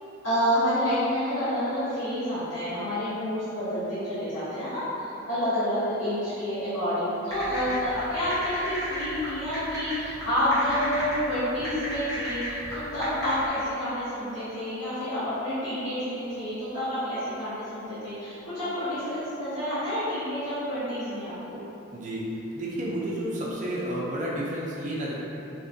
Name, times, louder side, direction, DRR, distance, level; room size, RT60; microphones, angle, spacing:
voice 1, 0.2-21.6, equal, 75° left, -15 dB, 1.1 m, -29 dB
sound 1, 7.3-13.4, equal, 15° left, 1.0 m, -35 dB
voice 2, 21.9-25.1, right 1 dB, 40° right, -5 dB, 0.4 m, -31 dB
3.3 x 2.8 x 2.6 m, 3.0 s
head